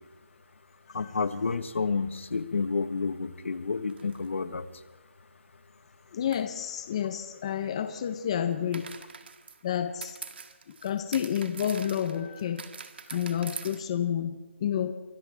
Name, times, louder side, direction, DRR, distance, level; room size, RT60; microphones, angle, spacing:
voice 1, 0.9-4.7, left 4 dB, 70° left, 11 dB, 1.5 m, -30 dB
sound 1, 3.9-4.3 6.3-6.5 8.7-13.8, right 5 dB, 55° right, 2.0 m, -44 dB
voice 2, 6.1-8.9 9.6-10.2 10.7-12.6 13.1-14.9, left 9 dB, 25° left, 9 dB, 0.9 m, -30 dB
29.5 x 25.0 x 3.6 m, 1.3 s
hypercardioid pair, 170°, 7 cm